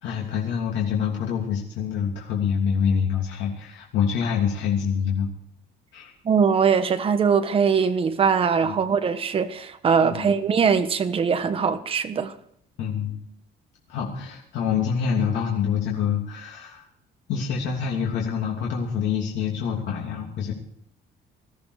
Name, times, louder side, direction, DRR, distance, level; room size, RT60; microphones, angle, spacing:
voice 1, 0.0-5.3 5.9-6.1 8.6-8.8 10.0-10.3 12.8-13.2 13.9-16.8 17.3-20.5, left 7 dB, 90° left, 3.0 m, -26 dB
voice 2, 6.2-12.3, right 6 dB, 30° right, 1.2 m, -21 dB
20.0 x 14.5 x 4.9 m
cardioid pair, 165°, 18 cm